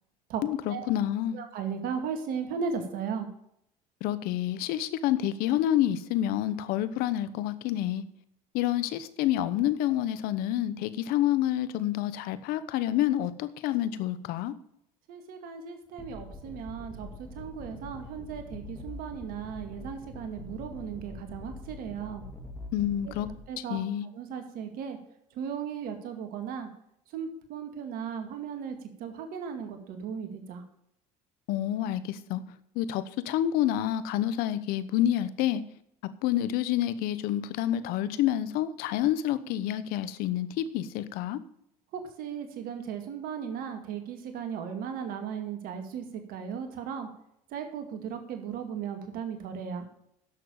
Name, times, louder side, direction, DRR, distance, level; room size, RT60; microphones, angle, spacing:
voice 1, 0.4-1.4 4.0-8.0 8.5-14.5 22.7-23.3 23.6-24.0 31.5-32.4 32.7-35.6 36.2-41.4, left 12 dB, 75° left, 14 dB, 1.0 m, -28 dB
voice 2, 1.3-3.3 15.1-22.2 23.0-23.1 23.5-23.8 24.1-25.0 25.3-26.7 27.1-30.6 41.9-47.1 47.5-49.9, right 7 dB, 70° right, 6 dB, 2.2 m, -36 dB
sound 1, 16.0-23.4, left 2 dB, 20° left, 2.9 m, -44 dB
10.5 x 6.8 x 6.9 m, 0.75 s
supercardioid pair, 85°, 16 cm